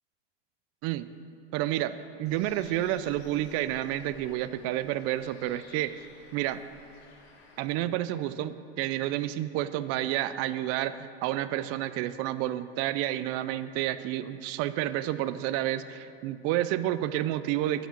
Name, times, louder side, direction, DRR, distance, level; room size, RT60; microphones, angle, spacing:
voice 1, 1.5-5.9 6.3-6.6 7.6-17.9, right 13 dB, 50° right, 13 dB, 0.5 m, -30 dB
Bird, 2.2-7.7, left 3 dB, 80° left, 1.9 m, -55 dB
9.0 x 7.1 x 7.3 m, 2.5 s
supercardioid pair, 125°, 32 cm